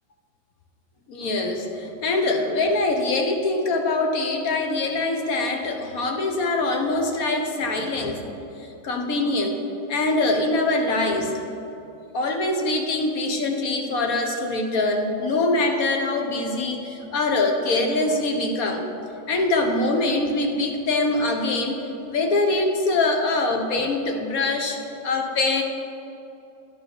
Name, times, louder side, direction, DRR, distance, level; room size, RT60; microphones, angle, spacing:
voice 1, 1.1-8.3 8.6-11.4 12.1-18.8 19.3-24.8 25.0-25.6, left 2 dB, 50° left, 4 dB, 1.3 m, -23 dB
10.5 x 10.5 x 6.0 m, 2.9 s
omnidirectional pair, 2.2 m